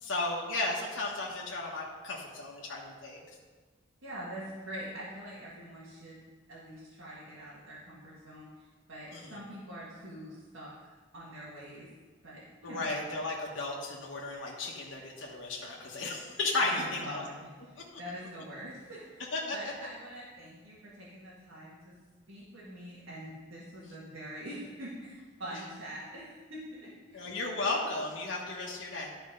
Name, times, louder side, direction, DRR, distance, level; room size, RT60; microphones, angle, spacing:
voice 1, 0.0-3.2 9.1-9.4 12.6-17.2 19.3-19.6 27.1-29.1, left 2 dB, 80° left, -2 dB, 1.2 m, -34 dB
voice 2, 4.0-6.2 6.5-8.5 8.9-11.9 12.2-12.9 16.6-17.5 18.0-22.0 22.3-27.3, equal, 85° right, -8 dB, 2.0 m, -44 dB
12.0 x 4.5 x 5.5 m, 1.4 s
head